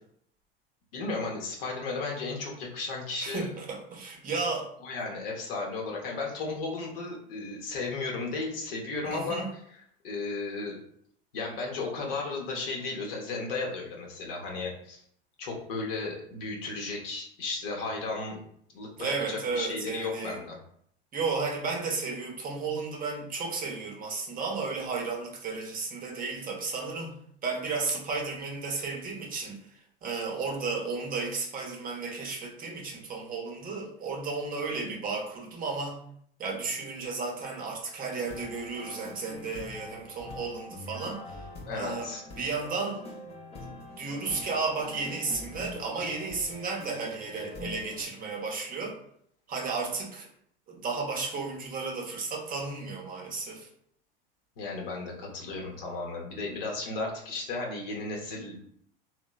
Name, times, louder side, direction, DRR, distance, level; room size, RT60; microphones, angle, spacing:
voice 1, 0.9-3.5 4.8-9.4 10.0-10.8 11.3-15.0 15.4-18.4 18.7-20.6 41.7-42.2 54.6-58.6, left 3 dB, 70° left, -1 dB, 0.8 m, -34 dB
voice 2, 3.2-4.7 9.1-9.5 19.0-20.4 21.1-27.1 27.4-36.0 36.4-41.4 41.7-42.1 42.4-43.0 43.6-49.0 49.5-50.3 50.7-53.7, right 4 dB, 30° right, -1 dB, 0.7 m, -33 dB
sound 1, 38.2-48.0, left 2 dB, 20° left, 0.5 m, -44 dB
2.8 x 2.1 x 2.2 m, 0.66 s
hypercardioid pair, 90°, 29 cm